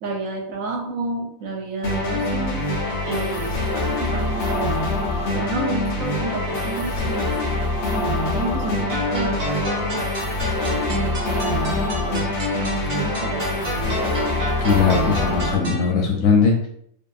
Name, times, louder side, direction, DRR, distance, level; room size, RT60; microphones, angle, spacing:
voice 1, 0.0-2.6 3.1-4.8 5.1-7.3 7.9-10.3 10.6-14.2, right 2 dB, 70° right, 1 dB, 1.0 m, -30 dB
sound 1, 1.8-15.6, left 2 dB, 55° left, 0.7 m, -24 dB
sound 2, 8.9-15.9, right 1 dB, 40° right, 0.7 m, -31 dB
voice 2, 14.6-16.7, left 5 dB, 90° left, 0 dB, 1.1 m, -19 dB
2.7 x 2.5 x 2.3 m, 0.69 s
omnidirectional pair, 1.6 m